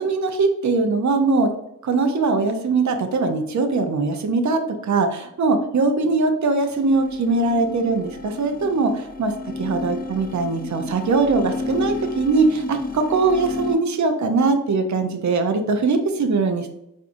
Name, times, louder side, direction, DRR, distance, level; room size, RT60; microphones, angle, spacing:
voice 1, 0.0-1.5 1.8-9.3 9.6-16.7, right 3 dB, 55° right, 5 dB, 0.5 m, -21 dB
sound 1, 6.7-13.8, left 3 dB, 25° left, 0.6 m, -32 dB
4.8 x 2.6 x 2.5 m, 0.81 s
wide cardioid pair, 65°, 34 cm